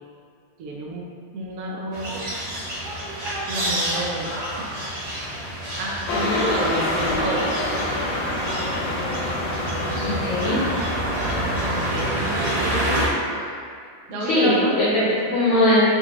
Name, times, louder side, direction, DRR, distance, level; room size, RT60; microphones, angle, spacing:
voice 1, 0.6-1.0 1.3-2.2 3.4-4.7 5.8-8.1 11.2-13.0 13.4-13.5 14.1-15.3, right 1 dB, 80° right, -3 dB, 0.8 m, -30 dB
sound 1, 1.9-13.1, right 1 dB, 65° right, 1.2 m, -28 dB
sound 2, 6.1-12.1, left 2 dB, 75° left, 1.2 m, -27 dB
voice 2, 10.0-10.6 14.3-15.0 15.3-15.8, left 1 dB, 60° left, -11 dB, 0.8 m, -20 dB
3.5 x 2.6 x 3.0 m, 2.2 s
omnidirectional pair, 2.2 m